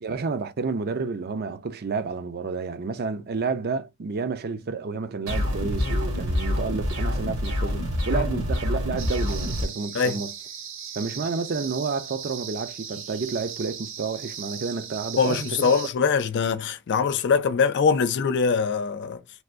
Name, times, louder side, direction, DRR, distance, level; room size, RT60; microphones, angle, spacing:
voice 1, 0.0-10.3 11.0-15.7, right 4 dB, 50° right, 0.5 m, -30 dB
sound 1, 5.3-9.7, left 1 dB, 85° right, 1.9 m, -26 dB
sound 2, 9.0-15.9, right 7 dB, 65° right, 1.0 m, -38 dB
voice 2, 15.2-19.2, left 5 dB, 55° left, 0.4 m, -23 dB
3.4 x 2.6 x 2.5 m
head